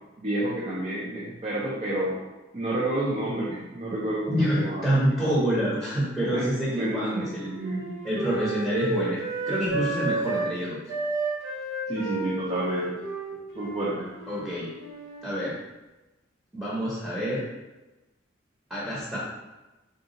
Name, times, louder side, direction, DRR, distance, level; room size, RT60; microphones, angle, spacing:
voice 1, 0.2-2.2 2.5-4.9 6.3-6.4 6.7-7.9 11.9-13.0 13.5-14.1, right 1 dB, 35° right, -7 dB, 0.6 m, -29 dB
voice 2, 4.3-7.5 8.0-10.8 14.3-14.7 15.2-15.5 16.5-17.4 18.7-19.2, equal, 10° right, -8 dB, 0.9 m, -27 dB
Wind instrument woodwind instrument, 6.5-10.5 10.9-15.3, right 3 dB, 80° right, 0.8 m, -32 dB
3.8 x 2.4 x 3.9 m, 1.1 s
head